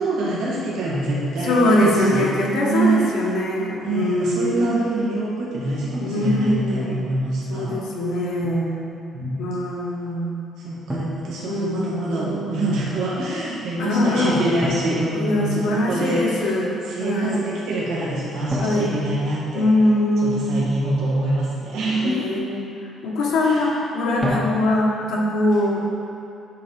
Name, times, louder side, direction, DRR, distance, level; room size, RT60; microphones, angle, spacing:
voice 1, 0.0-2.3 2.7-3.2 3.8-7.8 9.1-9.4 10.6-16.5 16.8-19.7 20.2-22.4 23.4-23.7, right 2 dB, 80° right, -7 dB, 1.6 m, -25 dB
voice 2, 1.4-4.8 6.0-7.0 7.5-8.8 9.4-10.3 11.4-12.4 13.8-14.5 15.1-17.5 18.6-19.0 19.5-20.5 22.0-22.7 23.0-25.9, left 1 dB, 70° left, -3 dB, 1.4 m, -22 dB
Drum, 8.4-8.7 10.9-12.0 14.6-16.0 18.5-20.2 24.2-25.2, equal, 5° right, 0.9 m, -31 dB
8.4 x 3.9 x 5.8 m, 2.7 s
cardioid pair, 170°, 0 cm